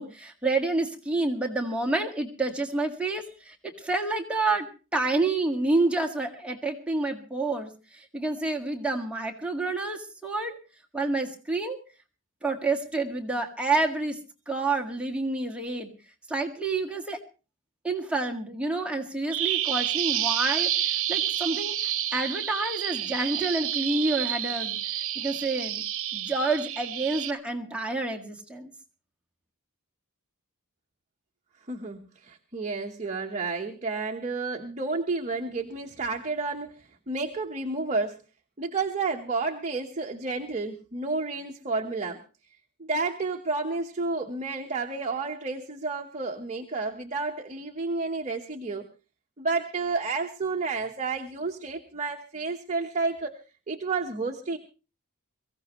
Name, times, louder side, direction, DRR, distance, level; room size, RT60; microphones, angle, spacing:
voice 1, 0.0-10.5 10.9-11.8 12.4-14.2 14.5-15.9 16.3-17.2 17.8-21.8 22.1-25.8 26.1-28.7, right 2 dB, 5° right, 1 dB, 1.9 m, -29 dB
Bird vocalization bird call bird song, 19.3-27.3, right 12 dB, 65° right, 1.0 m, -29 dB
voice 2, 31.7-38.2 38.6-42.2 42.8-48.9 49.4-53.4 53.7-54.6, right 3 dB, 30° right, 2 dB, 1.1 m, -31 dB
23.0 x 16.0 x 3.1 m, 0.33 s
head